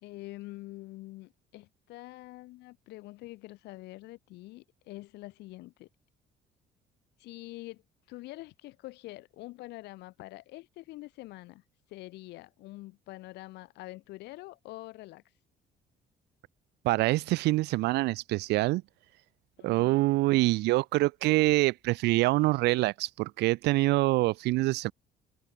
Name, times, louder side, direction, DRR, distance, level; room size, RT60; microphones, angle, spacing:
voice 1, 0.0-5.9 7.2-7.8 8.1-11.6 11.9-15.2 19.6-20.1, left 19 dB, 85° left, 4.4 m, -45 dB
voice 2, 16.8-18.8 19.6-24.9, right 20 dB, 85° right, 0.8 m, -25 dB
cardioid pair, 110°, 17 cm